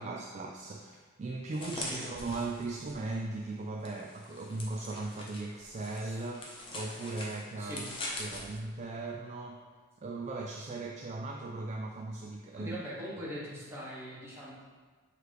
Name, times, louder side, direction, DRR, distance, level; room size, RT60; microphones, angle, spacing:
voice 1, 0.0-7.8 8.1-9.6 10.0-12.8, right 3 dB, 35° right, 1 dB, 0.3 m, -38 dB
sound 1, 1.5-3.1 3.8-8.6, left 2 dB, 25° left, 0.9 m, -43 dB
voice 2, 1.6-2.4 6.0-6.2 7.6-7.9 12.6-14.5, equal, 10° right, -7 dB, 1.5 m, -42 dB
6.7 x 3.3 x 4.8 m, 1.4 s
head